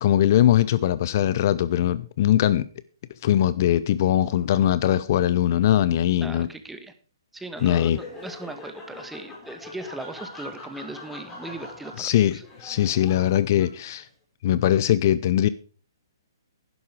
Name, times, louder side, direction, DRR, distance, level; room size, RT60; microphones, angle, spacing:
voice 1, 0.0-2.6 3.2-6.5 7.6-8.0 12.0-14.1 14.4-15.5, left 11 dB, 45° left, 0.6 m, -21 dB
voice 2, 6.2-6.9 7.3-12.4, right 2 dB, 5° right, 1.3 m, -39 dB
Laughter, 7.5-14.0, left 3 dB, 15° left, 5.3 m, -41 dB
11.5 x 11.0 x 4.9 m
figure-of-eight pair, 130°, 2 cm